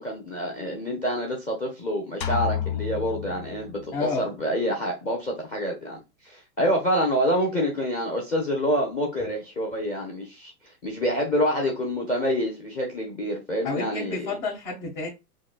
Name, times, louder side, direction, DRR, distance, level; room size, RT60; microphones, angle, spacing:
voice 1, 0.0-14.4, equal, 15° left, 0.9 m, -27 dB
sound 1, 2.2-4.1, left 9 dB, 85° left, 0.8 m, -30 dB
voice 2, 3.9-4.3 13.6-15.1, left 3 dB, 50° left, 2.0 m, -30 dB
6.1 x 2.3 x 2.4 m
hypercardioid pair, 135°, 48 cm